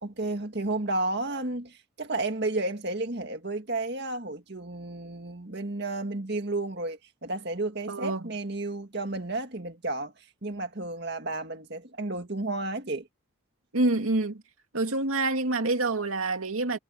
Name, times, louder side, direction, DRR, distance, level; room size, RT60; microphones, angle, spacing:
voice 1, 0.0-10.1 10.4-13.1, right 2 dB, 50° right, 1.9 m, -32 dB
voice 2, 7.9-8.3 13.7-14.4 14.7-16.8, right 2 dB, 80° right, 2.2 m, -27 dB
head